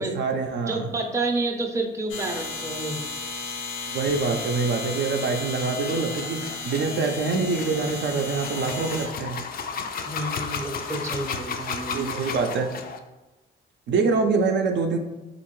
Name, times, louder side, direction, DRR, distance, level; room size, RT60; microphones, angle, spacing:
voice 1, 0.0-0.9 3.9-9.5 11.9-12.7 13.9-15.0, right 4 dB, 65° right, 3 dB, 0.5 m, -25 dB
voice 2, 0.6-3.0 10.1-12.1, right 2 dB, 15° right, 2 dB, 0.5 m, -29 dB
sound 1, 2.1-9.1, left 3 dB, 85° left, 0.7 m, -34 dB
sound 2, 5.2-13.0, left 5 dB, 50° left, 0.4 m, -34 dB
3.5 x 2.5 x 3.0 m, 1.1 s
cardioid pair, 90°, 20 cm